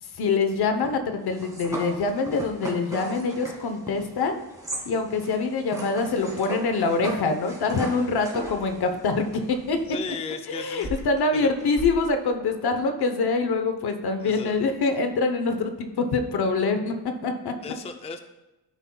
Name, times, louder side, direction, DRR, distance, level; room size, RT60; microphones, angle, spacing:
voice 1, 0.0-4.4 4.8-9.8 10.5-17.0 17.2-17.5, left 4 dB, 65° left, 6 dB, 0.9 m, -25 dB
sound 1, 0.8-10.1 10.8-11.9, right 1 dB, 10° right, 1.9 m, -38 dB
voice 2, 9.9-10.9 11.3-11.5 14.2-14.6 17.6-18.2, left 5 dB, 15° left, 7 dB, 0.4 m, -35 dB
12.5 x 5.4 x 2.3 m, 1.0 s
cardioid pair, 110°, 41 cm